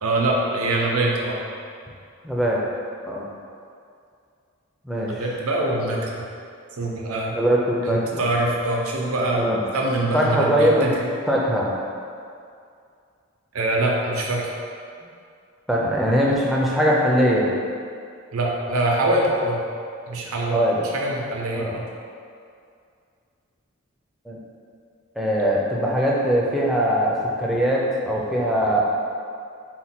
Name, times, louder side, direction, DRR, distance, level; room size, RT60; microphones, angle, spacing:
voice 1, 0.0-1.4 5.1-6.2 6.7-7.4 7.8-9.5 9.7-11.0 13.5-14.5 18.3-19.6 20.1-21.8, right 2 dB, 90° right, -2 dB, 0.6 m, -24 dB
voice 2, 2.2-2.6 3.1-3.3 4.8-5.3 7.3-8.2 9.4-9.6 10.1-10.9 11.3-11.7 15.7-17.5 20.5-20.8 21.5-21.7 24.3-24.4 25.2-28.8, equal, ahead, -5 dB, 0.4 m, -21 dB
4.3 x 2.2 x 4.2 m, 2.4 s
head